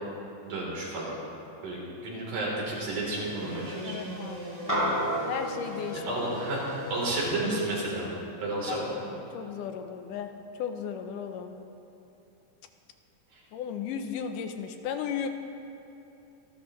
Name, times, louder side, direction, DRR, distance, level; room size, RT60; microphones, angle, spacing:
voice 1, 0.4-1.2 1.6-4.0 6.1-6.6 6.9-8.9, right 2 dB, 70° right, -5 dB, 5.1 m, -32 dB
sound 1, 2.7-7.7, left 1 dB, 20° right, 3.5 m, -39 dB
voice 2, 3.8-6.0 8.7-11.6 13.5-15.3, left 7 dB, 80° left, 7 dB, 2.3 m, -36 dB
sound 2, 4.7-9.3, right 1 dB, 10° left, 3.2 m, -34 dB
26.5 x 12.5 x 3.2 m, 2.8 s
omnidirectional pair, 3.8 m